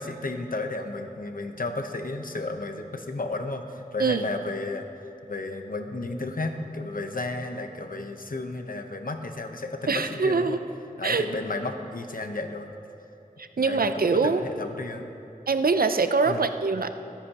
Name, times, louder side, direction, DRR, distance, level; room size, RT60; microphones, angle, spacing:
voice 1, 0.0-4.9 5.3-10.6 11.0-12.7 13.6-15.1 16.3-16.5, left 2 dB, 70° left, 5 dB, 1.0 m, -33 dB
voice 2, 9.9-10.6 11.0-11.3 13.4-14.4 15.5-16.9, right 4 dB, 80° right, 9 dB, 0.5 m, -23 dB
23.0 x 10.0 x 3.0 m, 2.8 s
wide cardioid pair, 45°, 15 cm